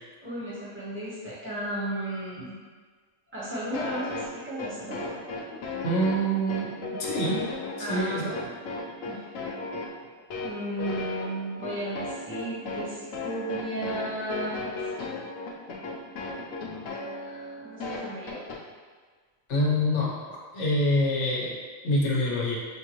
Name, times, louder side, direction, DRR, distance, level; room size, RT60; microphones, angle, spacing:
voice 1, 0.2-2.6 3.3-5.1 7.8-8.6 9.0-9.3 10.4-14.8 17.1-18.4, right 1 dB, 10° right, -10 dB, 1.2 m, -34 dB
sound 1, 3.7-18.6, left 3 dB, 85° left, 1.1 m, -35 dB
voice 2, 5.8-7.5 7.9-8.4 19.5-20.1 20.5-21.6 21.8-22.6, equal, 60° left, -4 dB, 1.2 m, -26 dB
5.7 x 2.6 x 3.0 m, 1.5 s
omnidirectional pair, 1.4 m